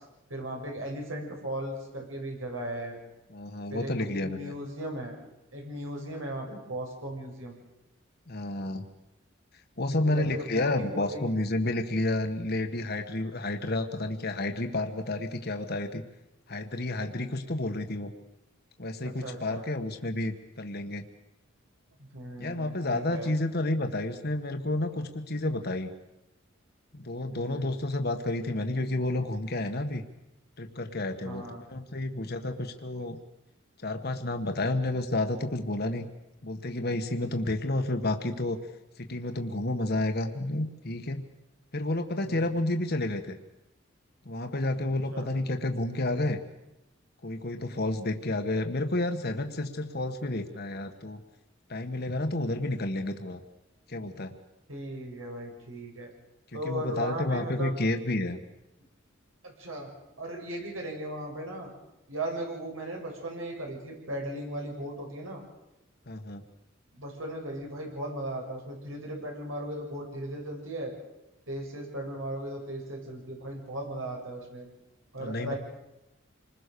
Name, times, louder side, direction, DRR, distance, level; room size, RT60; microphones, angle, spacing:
voice 1, 0.3-3.0 3.7-5.1 5.5-7.6 10.0-11.3 19.0-19.6 22.0-23.4 27.3-27.8 31.3-31.6 42.2-42.6 45.1-45.3 54.7-56.1 56.5-57.7 59.4-59.9 60.2-61.7 62.1-65.4 66.9-70.9 71.5-74.7 75.1-75.6, right 1 dB, 85° right, 0 dB, 7.0 m, -37 dB
voice 2, 3.3-4.5 8.3-8.9 9.8-16.0 16.5-18.1 18.8-21.1 22.4-25.9 26.9-30.0 30.6-33.2 33.8-36.1 36.4-38.6 39.0-41.2 41.7-43.4 44.2-46.4 47.2-51.2 51.7-53.4 53.9-54.4 56.6-58.4 66.1-66.4 75.2-75.5, left 2 dB, 50° left, 6 dB, 1.6 m, -30 dB
27.0 x 20.5 x 6.9 m, 0.93 s
head